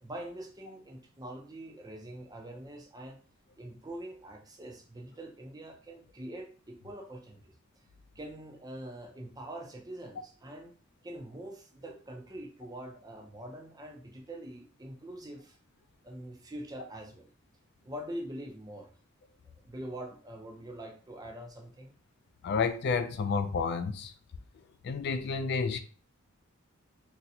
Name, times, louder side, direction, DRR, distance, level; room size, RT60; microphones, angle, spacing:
voice 1, 0.0-3.2 3.6-7.5 8.2-10.7 11.0-15.6 16.0-17.3 17.8-18.9 19.6-21.9, right 1 dB, 20° right, 0.6 m, -44 dB
voice 2, 22.4-24.1 24.8-25.8, left 5 dB, 55° left, 0.3 m, -30 dB
4.1 x 2.2 x 2.7 m
head